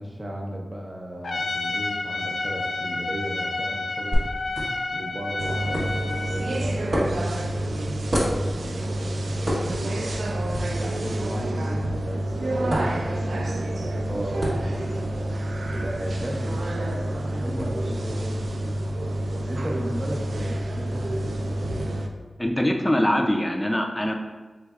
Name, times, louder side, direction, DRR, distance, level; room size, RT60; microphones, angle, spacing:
voice 1, 0.0-4.3 4.9-10.2 10.7-15.1 15.8-18.7 19.5-21.8, equal, 35° right, -1 dB, 0.8 m, -35 dB
Trumpet, 1.2-6.5, left 2 dB, 80° left, 0.4 m, -30 dB
sound 1, 4.1-21.8, equal, 65° right, 1.3 m, -34 dB
sound 2, 5.4-22.1, right 1 dB, 80° right, 0.3 m, -28 dB
voice 2, 22.4-24.1, equal, 10° left, 3 dB, 0.4 m, -23 dB
5.1 x 3.3 x 2.4 m, 1.3 s
wide cardioid pair, 80°, 0 cm